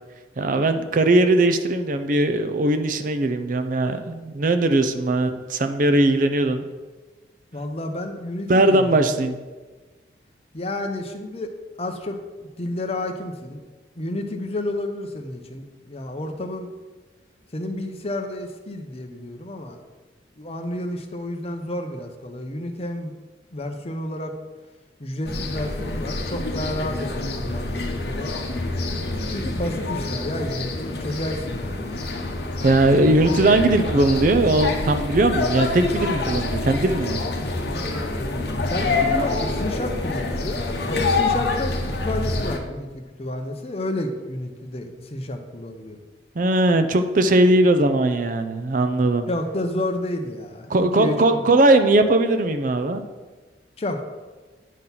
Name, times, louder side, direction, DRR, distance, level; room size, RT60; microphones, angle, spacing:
voice 1, 0.4-6.6 8.5-9.4 32.6-37.2 46.4-49.3 50.7-53.0, right 2 dB, 45° right, 9 dB, 0.5 m, -19 dB
voice 2, 7.5-9.4 10.5-11.5 11.8-12.2 12.6-13.6 14.0-16.7 17.5-19.8 20.4-23.1 23.5-24.3 25.0-28.3 29.3-31.9 38.7-46.0 49.3-51.4 53.8-54.0, left 1 dB, 35° left, 5 dB, 0.7 m, -30 dB
sound 1, 25.3-42.6, left 2 dB, 60° left, 1.0 m, -26 dB
9.3 x 3.8 x 5.8 m, 1.3 s
head